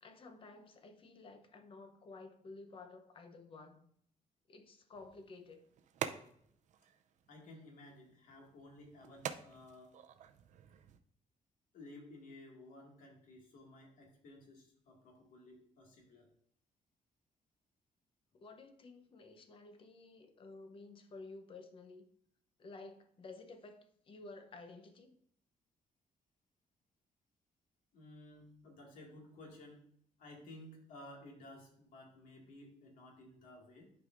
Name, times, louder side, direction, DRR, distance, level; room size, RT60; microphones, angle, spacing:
voice 1, 0.0-3.9 4.5-5.6 18.3-22.1 22.6-25.1, left 3 dB, 40° left, 0.8 m, -53 dB
sound 1, 4.9-11.0, right 9 dB, 60° right, 0.5 m, -48 dB
voice 2, 7.3-10.0 11.7-16.3 27.9-29.8 30.2-33.9, left 1 dB, 75° left, 2.1 m, -55 dB
11.0 x 4.8 x 2.5 m
cardioid pair, 165°, 14 cm